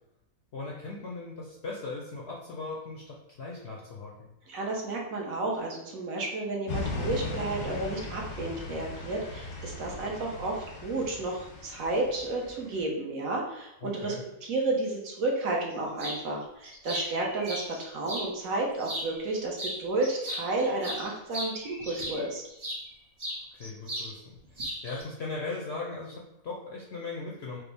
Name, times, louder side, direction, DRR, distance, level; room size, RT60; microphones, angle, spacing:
voice 1, 0.5-4.3 13.8-14.2 23.5-27.6, left 3 dB, 65° left, -3 dB, 0.6 m, -38 dB
voice 2, 4.5-14.1 14.4-22.4, right 2 dB, 65° right, -1 dB, 1.2 m, -32 dB
sound 1, 6.7-12.8, left 3 dB, 90° left, 1.4 m, -38 dB
sound 2, 16.0-16.2 16.6-18.3 18.8-19.3 19.6-22.8 23.2-24.1 24.4-25.0, equal, 40° right, 0.4 m, -36 dB
4.7 x 2.0 x 3.3 m, 0.80 s
omnidirectional pair, 1.6 m